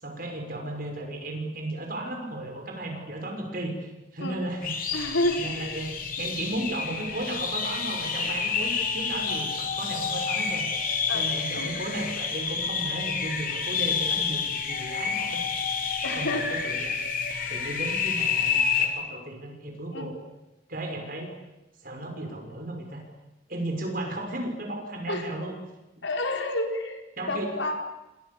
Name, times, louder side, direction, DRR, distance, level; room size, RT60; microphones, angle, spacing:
voice 1, 0.0-4.7 5.4-5.9 6.2-10.7 11.1-15.4 16.1-17.0 17.5-20.2 20.7-21.3 21.8-23.0 23.5-25.6 27.2-27.8, right 1 dB, 45° right, 3 dB, 6.6 m, -35 dB
sound 1, 4.6-18.9, left 6 dB, 45° left, 4.0 m, -29 dB
voice 2, 4.9-5.8 11.1-11.2 11.6-11.7 16.0-16.8 19.9-20.1 25.1-25.3 26.0-27.0 27.3-27.7, left 1 dB, 75° left, 4 dB, 4.7 m, -29 dB
29.5 x 26.0 x 7.4 m, 0.97 s
head